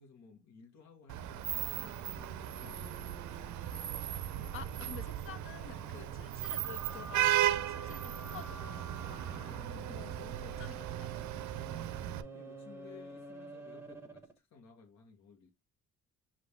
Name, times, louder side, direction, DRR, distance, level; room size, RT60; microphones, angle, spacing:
voice 1, 0.0-3.7 4.3-5.0 8.9-10.7 11.5-15.5, left 5 dB, 60° left, 1.3 m, -58 dB
Vehicle horn car horn honking / Traffic noise roadway noise, 1.1-12.2, right 13 dB, 70° right, 0.5 m, -36 dB
sound 1, 1.7-14.4, right 4 dB, 10° right, 1.0 m, -49 dB
voice 2, 2.6-2.9 4.5-8.9 9.7-11.5, left 9 dB, 45° left, 0.6 m, -50 dB
5.2 x 2.7 x 3.3 m
cardioid pair, 90°, 30 cm